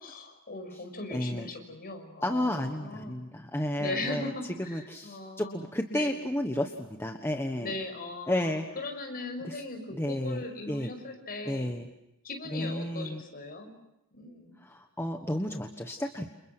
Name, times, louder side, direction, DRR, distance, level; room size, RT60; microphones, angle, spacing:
voice 1, 0.0-3.2 3.8-6.1 7.6-11.7 12.2-13.7 14.1-14.6, left 2 dB, 45° left, 5 dB, 6.2 m, -39 dB
voice 2, 1.1-1.5 2.2-4.3 4.7-7.7 8.3-8.6 9.4-9.6 9.9-10.9 11.4-11.9 12.5-13.2 14.6-16.3, left 1 dB, 10° left, 4 dB, 1.3 m, -32 dB
29.5 x 29.5 x 6.1 m, 0.89 s
head